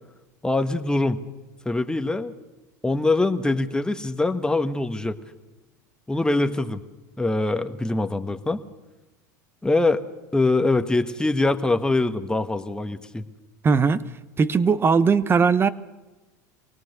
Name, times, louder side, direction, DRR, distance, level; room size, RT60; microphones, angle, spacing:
voice 1, 0.4-1.2 1.6-2.3 2.8-5.2 6.1-6.8 7.2-8.6 9.6-10.0 10.3-13.2, left 2 dB, 10° left, 8 dB, 1.3 m, -23 dB
voice 2, 13.6-14.0 14.4-15.7, right 5 dB, 25° right, 15 dB, 0.9 m, -19 dB
23.5 x 18.0 x 6.7 m, 1.1 s
hypercardioid pair, 95°, 10 cm